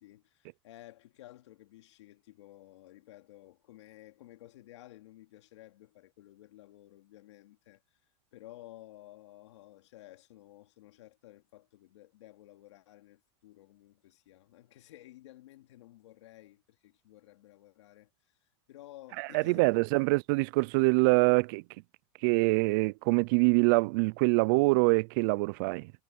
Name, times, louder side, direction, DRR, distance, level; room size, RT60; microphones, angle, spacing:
voice 1, 0.0-7.8 8.3-19.7, left 15 dB, 85° left, 2.7 m, -54 dB
voice 2, 19.2-21.6 22.2-25.9, right 28 dB, 45° right, 0.3 m, -25 dB
supercardioid pair, 165°, 15 cm